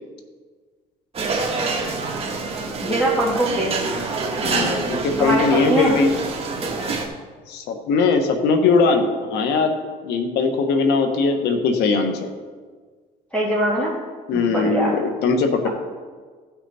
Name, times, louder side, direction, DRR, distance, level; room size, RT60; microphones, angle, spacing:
sound 1, 1.1-7.1, right 3 dB, 35° right, 1.7 m, -26 dB
voice 1, 2.8-3.8 5.2-5.9 13.3-14.0 14.3-14.9, right 1 dB, 5° left, -6 dB, 2.9 m, -22 dB
voice 2, 4.4-6.1 7.5-9.8 10.0-12.3 14.3-15.7, left 4 dB, 80° left, 6 dB, 1.3 m, -20 dB
15.0 x 6.0 x 4.2 m, 1.5 s
cardioid pair, 110°, 17 cm